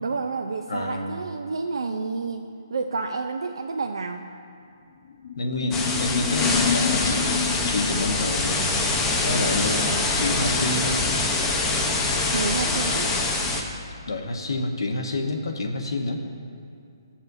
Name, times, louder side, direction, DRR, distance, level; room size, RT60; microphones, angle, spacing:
voice 1, 0.0-4.2 12.3-13.1, right 4 dB, 80° right, 4 dB, 0.5 m, -29 dB
voice 2, 0.7-1.2 5.3-7.4 7.7-8.7 9.2-11.0 14.1-16.2, left 2 dB, 85° left, 4 dB, 1.1 m, -28 dB
sound 1, 5.1-8.2, left 6 dB, 45° left, 0.3 m, -28 dB
sound 2, 5.7-13.6, left 3 dB, 15° left, 0.7 m, -24 dB
14.5 x 7.2 x 2.7 m, 2.6 s
hypercardioid pair, 155°, 2 cm